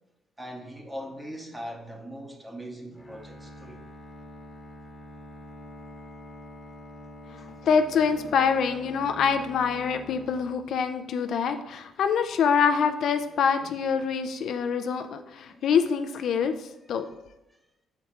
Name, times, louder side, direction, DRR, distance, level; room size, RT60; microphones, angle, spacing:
voice 1, 0.4-3.8 8.1-8.4 15.5-15.7 17.5-17.6, equal, 15° right, 1.1 m, -41 dB
Bowed string instrument, 2.9-11.1, left 1 dB, 10° left, 1.1 m, -46 dB
voice 2, 7.3-17.1, left 6 dB, 70° left, 0.4 m, -25 dB
6.5 x 4.6 x 3.6 m
cardioid pair, 90°, 0 cm